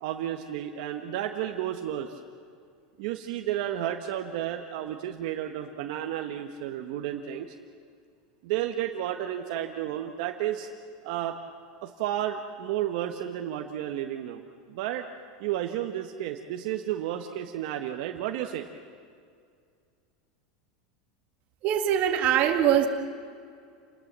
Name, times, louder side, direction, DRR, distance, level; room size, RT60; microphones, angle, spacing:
voice 1, 0.0-2.2 3.0-7.5 8.4-10.7 11.0-11.4 11.8-14.4 14.7-15.1 15.4-18.7, right 11 dB, 55° right, 4 dB, 1.5 m, -32 dB
voice 2, 21.6-22.9, right 10 dB, 35° right, 4 dB, 2.2 m, -22 dB
29.5 x 20.0 x 7.6 m, 2.3 s
supercardioid pair, 170°, 4 cm